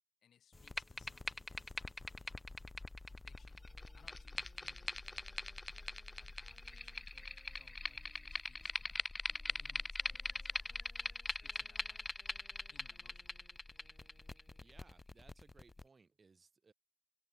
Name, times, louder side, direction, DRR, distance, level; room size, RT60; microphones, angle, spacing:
voice 1, 0.2-2.6 3.0-3.7 3.9-9.1 9.5-10.9 11.3-12.1 12.7-13.3, left 9 dB, 55° left, 5.1 m, -70 dB
sound 1, 0.5-15.8, left 2 dB, 20° left, 0.4 m, -43 dB
sound 2, 3.5-8.8 9.3-14.9, right 7 dB, 50° right, 2.2 m, -73 dB
voice 2, 14.6-16.7, right 4 dB, 30° right, 1.8 m, -65 dB
supercardioid pair, 65°, 0 cm